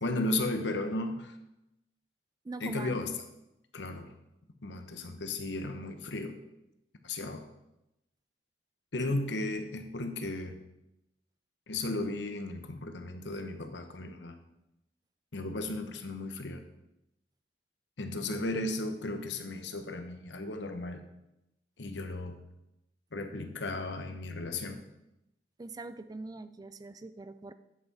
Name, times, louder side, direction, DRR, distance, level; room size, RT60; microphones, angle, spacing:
voice 1, 0.0-1.3 2.6-3.1 3.7-4.1 4.6-6.4 7.0-7.5 8.9-10.6 11.7-14.4 15.3-16.6 18.0-21.0 21.8-22.4 23.1-24.8, left 2 dB, 90° left, 7 dB, 1.0 m, -35 dB
voice 2, 2.4-3.0 9.1-9.2 25.6-27.5, right 3 dB, 20° right, 12 dB, 0.3 m, -43 dB
9.8 x 5.8 x 4.1 m, 0.89 s
head